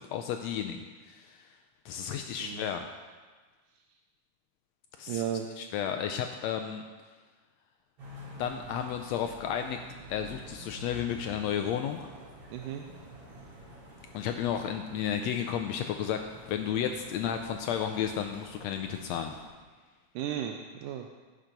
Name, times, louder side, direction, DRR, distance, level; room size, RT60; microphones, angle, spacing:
voice 1, 0.0-1.5 1.8-2.9 5.0-5.2 5.6-6.8 8.4-9.8 10.1-12.1 14.1-19.4, left 9 dB, 80° left, 6 dB, 1.5 m, -33 dB
voice 2, 5.1-5.5 12.5-12.9 20.2-21.1, right 10 dB, 90° right, 4 dB, 2.2 m, -34 dB
sound 1, 8.0-19.5, equal, 45° right, 3.9 m, -49 dB
16.0 x 5.9 x 5.2 m, 1.4 s
omnidirectional pair, 3.6 m